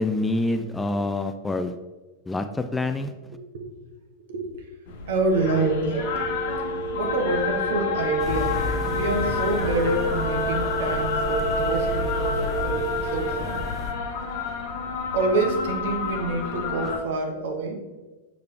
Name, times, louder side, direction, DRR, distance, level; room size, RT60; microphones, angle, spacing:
voice 1, 0.0-1.7 2.3-3.1, left 2 dB, 10° left, 8 dB, 0.4 m, -26 dB
voice 2, 3.3-3.7 4.3-4.6 5.1-6.1 7.0-13.6 15.1-17.9, right 3 dB, 55° right, 3 dB, 1.3 m, -27 dB
sound 1, 4.9-17.0, left 4 dB, 55° left, 1.1 m, -30 dB
Telephone, 5.3-13.3, right 3 dB, 75° right, 2.1 m, -32 dB
sound 2, 8.2-13.9, left 3 dB, 25° left, 1.5 m, -32 dB
6.6 x 6.4 x 3.4 m, 1.2 s
figure-of-eight pair, 90°, 0 cm